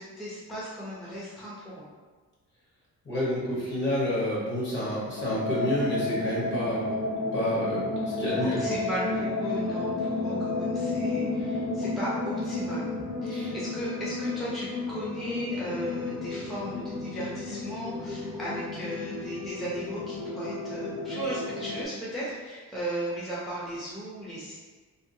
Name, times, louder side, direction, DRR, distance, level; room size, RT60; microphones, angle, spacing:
voice 1, 0.0-1.8 8.4-12.9 13.2-24.5, equal, ahead, -8 dB, 0.6 m, -36 dB
voice 2, 3.0-7.0 7.3-7.9 8.2-8.6 13.3-13.5, left 1 dB, 40° left, -6 dB, 1.2 m, -29 dB
sound 1, 5.2-21.8, left 2 dB, 75° left, 0.6 m, -32 dB
2.8 x 2.0 x 2.6 m, 1.4 s
cardioid pair, 90°, 30 cm